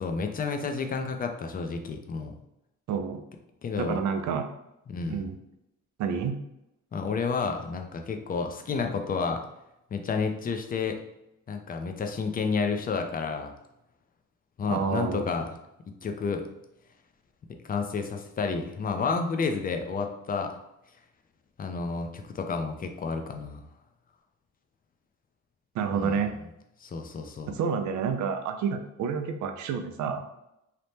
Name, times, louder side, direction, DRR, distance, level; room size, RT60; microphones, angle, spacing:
voice 1, 0.0-2.4 3.6-4.0 4.9-5.3 6.9-9.4 9.9-11.0 11.5-13.5 14.6-15.5 16.0-16.4 17.7-20.5 21.6-23.7 25.9-26.3 26.8-27.5, left 5 dB, 30° left, 5 dB, 0.4 m, -30 dB
voice 2, 2.9-3.2 3.8-4.5 5.1-5.4 6.0-6.4 14.7-15.2 25.7-26.3 27.5-30.2, right 6 dB, 70° right, 7 dB, 0.5 m, -29 dB
2.8 x 2.0 x 3.3 m, 0.86 s
cardioid pair, 90°, 30 cm